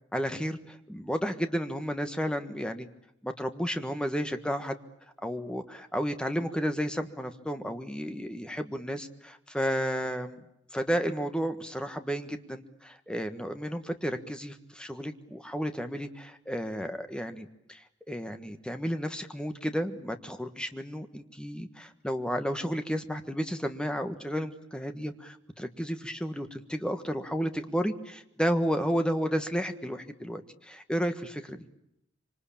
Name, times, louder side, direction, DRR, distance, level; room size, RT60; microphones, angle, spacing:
voice 1, 0.1-2.9 3.2-4.8 5.2-10.4 10.7-31.7, equal, 5° left, 7 dB, 1.5 m, -32 dB
26.0 x 25.5 x 8.7 m, 0.80 s
head